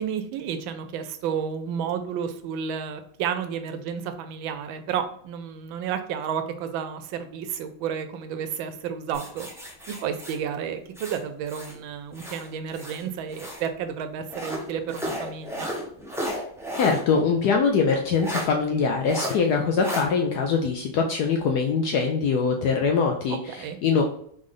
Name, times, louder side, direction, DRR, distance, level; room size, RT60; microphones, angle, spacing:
voice 1, 0.0-9.5 9.9-15.7 23.5-23.8, right 7 dB, 80° right, 9 dB, 1.3 m, -31 dB
sound 1, 9.1-11.8 12.1-13.7 14.3-17.0 17.4-17.5 18.2-18.5 19.0-19.3 19.8-20.0, equal, 5° right, 0.3 m, -34 dB
voice 2, 16.8-24.0, left 5 dB, 75° left, 2 dB, 0.9 m, -23 dB
3.8 x 3.2 x 3.7 m, 0.64 s
omnidirectional pair, 2.1 m